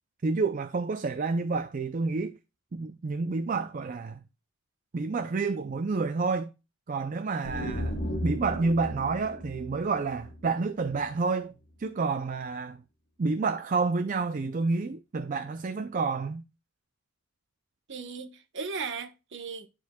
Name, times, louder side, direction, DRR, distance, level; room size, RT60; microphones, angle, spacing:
voice 1, 0.2-2.3 2.7-4.2 4.9-6.5 6.9-11.5 11.8-12.8 13.2-16.4, right 4 dB, 40° right, 0.5 m, -29 dB
sound 1, 7.4-11.1, equal, 55° left, 1.1 m, -35 dB
voice 2, 17.9-19.7, right 5 dB, 60° right, 1.1 m, -37 dB
11.5 x 4.5 x 2.3 m
head